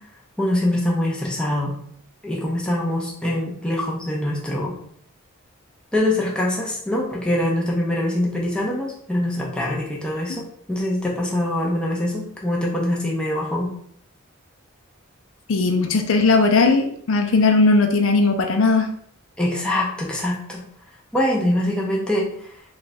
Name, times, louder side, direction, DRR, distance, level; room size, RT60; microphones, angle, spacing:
voice 1, 0.4-1.7 2.2-4.7 5.9-10.4 10.7-13.7 19.4-20.6 21.1-22.3, left 1 dB, 5° left, -4 dB, 0.7 m, -23 dB
voice 2, 15.5-18.9, left 3 dB, 70° left, 4 dB, 0.5 m, -18 dB
3.3 x 2.4 x 4.1 m, 0.65 s
head